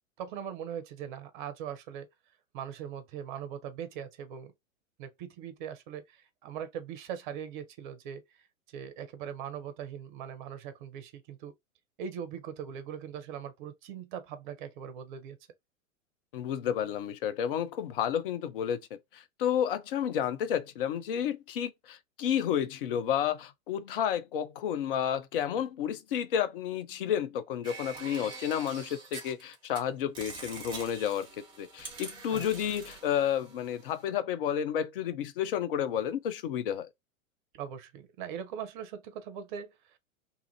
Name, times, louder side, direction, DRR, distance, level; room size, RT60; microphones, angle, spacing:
voice 1, 0.2-2.1 2.5-4.5 5.0-8.2 8.7-11.5 12.0-15.4 32.3-32.7 37.5-40.0, right 8 dB, 35° right, 0.7 m, -40 dB
voice 2, 16.3-36.9, left 9 dB, 45° left, 0.5 m, -31 dB
sound 1, 27.6-29.8 30.1-34.0, right 4 dB, 10° right, 0.9 m, -45 dB
2.6 x 2.4 x 2.7 m
figure-of-eight pair, 95°, 41 cm